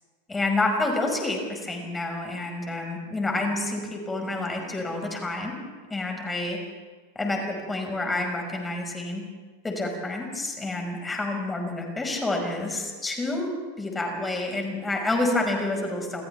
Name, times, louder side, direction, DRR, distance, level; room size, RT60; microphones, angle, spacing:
voice 1, 0.3-5.6 5.9-6.6 7.2-9.2 9.6-16.2, left 2 dB, 10° left, 2 dB, 5.6 m, -28 dB
29.0 x 27.0 x 3.6 m, 1.4 s
figure-of-eight pair, 90°, 0 cm